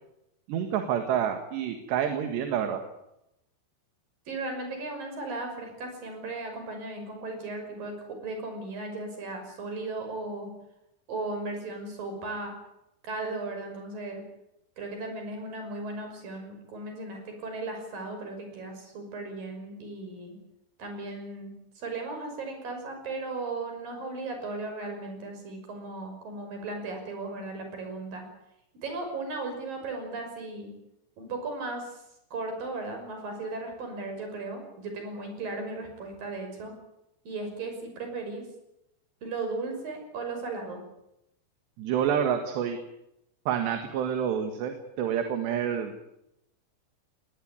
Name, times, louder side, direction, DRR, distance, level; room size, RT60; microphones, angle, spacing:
voice 1, 0.5-2.8 41.8-42.8 43.5-45.9, right 8 dB, 70° right, 6 dB, 3.8 m, -28 dB
voice 2, 4.3-10.5 11.1-12.5 13.0-14.2 14.8-20.4 20.8-21.5 21.8-28.2 28.8-30.7 31.2-32.0 32.3-36.7 37.3-38.5 39.2-40.8, right 3 dB, 50° right, 5 dB, 7.4 m, -36 dB
21.0 x 19.5 x 9.6 m, 0.85 s
omnidirectional pair, 5.2 m